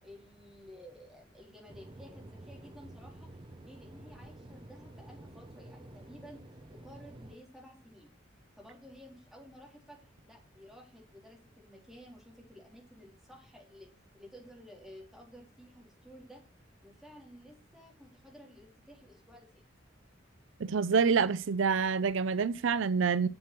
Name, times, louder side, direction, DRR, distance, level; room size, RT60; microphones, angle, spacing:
voice 1, 0.0-3.3 3.6-6.4 6.7-8.1 8.6-13.9 14.1-16.4 16.8-19.6, equal, ahead, 3.8 m, -53 dB
sound 1, 1.7-7.3, right 1 dB, 25° right, 0.9 m, -50 dB
voice 2, 20.6-23.3, right 5 dB, 75° right, 0.5 m, -27 dB
7.7 x 7.5 x 5.9 m
head